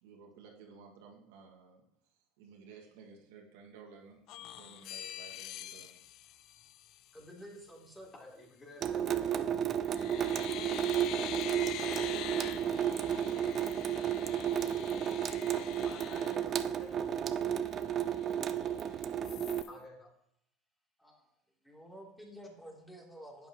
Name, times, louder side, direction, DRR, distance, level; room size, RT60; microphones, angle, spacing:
voice 1, 0.0-1.8 2.4-4.2 4.6-6.0 11.9-14.6, right 5 dB, 75° right, 0 dB, 2.2 m, -54 dB
sound 1, 4.3-7.3 9.1-9.5 9.8-17.1 17.5-17.6 17.9-18.8 19.2-19.7, left 13 dB, 55° left, 0.5 m, -45 dB
voice 2, 7.1-8.1 21.0-21.3 21.6-23.5, equal, 5° left, -2 dB, 3.3 m, -50 dB
voice 3, 8.1-9.5 15.8-17.0 19.7-20.1, left 2 dB, 30° left, -2 dB, 3.9 m, -51 dB
Water tap faucet / Sink (filling or washing) / Drip, 8.8-19.6, right 9 dB, 40° right, 0.6 m, -32 dB
11.0 x 9.2 x 3.1 m, 0.77 s
hypercardioid pair, 95°, 0 cm